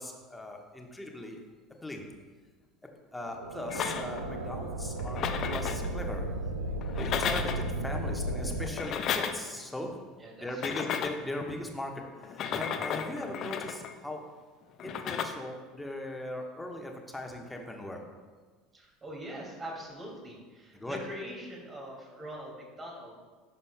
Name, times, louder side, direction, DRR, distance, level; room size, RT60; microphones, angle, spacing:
voice 1, 0.0-1.4 1.8-2.1 3.1-6.2 6.6-10.0 10.4-14.2 14.8-18.0 20.7-21.0, left 1 dB, 10° left, 1 dB, 1.2 m, -39 dB
sound 1, 3.2-8.7, right 1 dB, 80° right, 0.5 m, -34 dB
sound 2, 3.7-4.3 5.0-5.9 6.8-7.7 8.6-9.6 10.5-11.3 12.2-14.0 14.8-15.2, left 8 dB, 45° left, 0.5 m, -34 dB
voice 2, 10.2-10.6 18.7-23.2, right 1 dB, 25° right, -2 dB, 2.4 m, -43 dB
11.0 x 6.9 x 2.3 m, 1.4 s
figure-of-eight pair, 70°, 0 cm